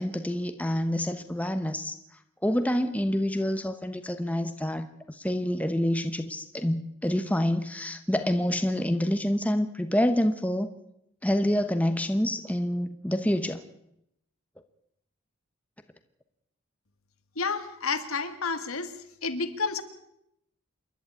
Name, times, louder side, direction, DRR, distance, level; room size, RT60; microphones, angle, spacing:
voice 1, 0.0-1.9 2.4-10.7 11.2-13.6, left 1 dB, 5° left, 8 dB, 1.0 m, -27 dB
voice 2, 17.4-18.9 19.2-19.8, left 4 dB, 80° left, 9 dB, 1.9 m, -30 dB
28.0 x 12.0 x 8.5 m, 0.78 s
head